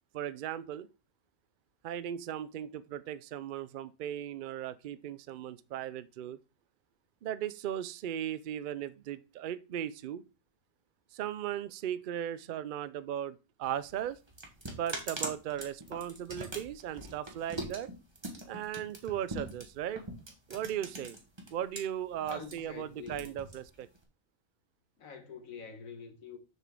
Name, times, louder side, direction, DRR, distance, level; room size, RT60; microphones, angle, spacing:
voice 1, 0.1-0.9 1.8-6.4 7.2-10.2 11.1-14.2 14.7-17.9 18.5-20.0 20.5-21.2 21.5-23.9, right 10 dB, 80° right, 0.4 m, -37 dB
sound 1, 13.6-21.8 22.1-24.0, right 2 dB, 20° right, 1.3 m, -42 dB
voice 2, 22.2-23.3 25.0-26.4, left 6 dB, 80° left, 1.7 m, -46 dB
6.8 x 6.6 x 3.6 m
omnidirectional pair, 1.4 m